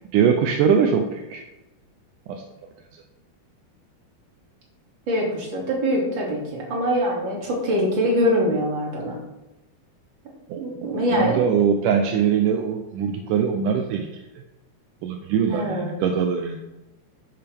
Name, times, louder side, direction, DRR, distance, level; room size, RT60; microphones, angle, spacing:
voice 1, 0.1-1.4 2.3-2.4 10.5-10.6 11.1-14.4 15.0-16.6, right 7 dB, 75° right, 4 dB, 1.9 m, -22 dB
voice 2, 5.1-9.2 10.6-11.4 15.5-15.9, equal, 35° right, -3 dB, 2.9 m, -23 dB
12.0 x 8.4 x 3.6 m, 1.0 s
omnidirectional pair, 4.5 m